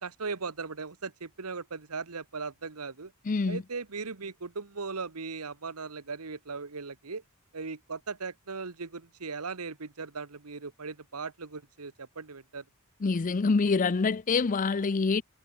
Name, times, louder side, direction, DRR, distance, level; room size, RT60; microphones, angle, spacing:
voice 1, 0.0-3.1 3.4-7.2 7.5-12.6, right 4 dB, 85° right, 1.3 m, -38 dB
voice 2, 3.3-3.6 13.0-15.2, left 4 dB, 35° left, 0.5 m, -26 dB
head